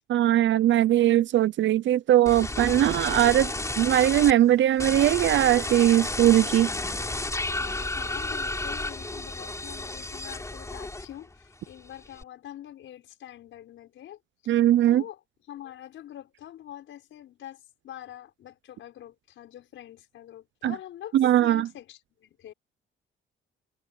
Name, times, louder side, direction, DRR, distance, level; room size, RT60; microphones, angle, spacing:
voice 1, 0.1-3.5 3.8-6.7 14.5-15.0 20.6-20.7 21.1-21.7, right 12 dB, 70° right, 0.7 m, -20 dB
sound 1, 2.3-4.3 4.8-11.3 11.7-12.2, left 2 dB, 15° left, 3.5 m, -32 dB
voice 2, 7.5-14.6 14.8-15.2 15.5-22.5, left 12 dB, 75° left, 6.0 m, -45 dB
cardioid pair, 90°, 20 cm